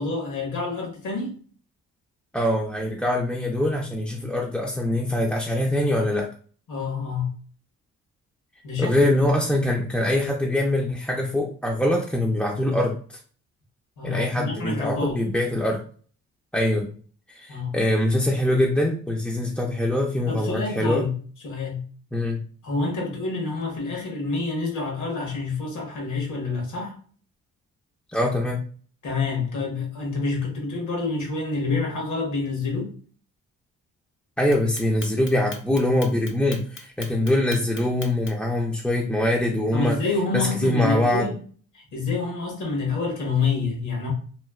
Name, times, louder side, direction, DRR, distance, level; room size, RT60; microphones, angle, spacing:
voice 1, 0.0-1.4 6.7-7.3 8.6-9.1 14.0-15.2 17.5-17.8 20.3-21.1 21.4-21.8 22.6-27.0 29.0-33.0 39.7-41.3 41.7-44.1, left 3 dB, 75° left, 1.4 m, -27 dB
voice 2, 2.3-6.3 8.8-13.2 14.0-15.8 16.5-16.9 17.3-21.1 22.1-22.4 28.1-28.6 34.4-40.0 40.3-41.3, left 1 dB, 5° left, 0.5 m, -23 dB
Clock, 34.5-38.5, left 4 dB, 45° left, 0.7 m, -39 dB
3.1 x 2.6 x 2.4 m
cardioid pair, 90°, 30 cm